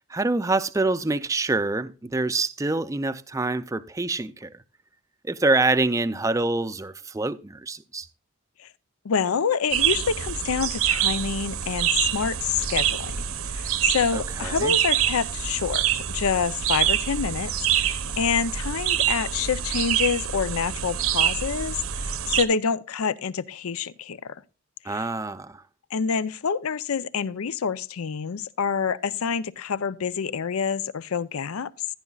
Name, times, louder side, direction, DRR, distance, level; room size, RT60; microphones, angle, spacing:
voice 1, 0.1-4.6 5.2-8.1 14.1-14.8 24.8-25.6, right 2 dB, 15° right, 0.4 m, -26 dB
voice 2, 9.0-13.2 13.5-24.4 24.9-25.1 25.9-31.7, left 6 dB, 85° left, 0.5 m, -27 dB
sound 1, 9.7-22.4, right 10 dB, 85° right, 0.9 m, -26 dB
15.0 x 10.5 x 2.3 m
head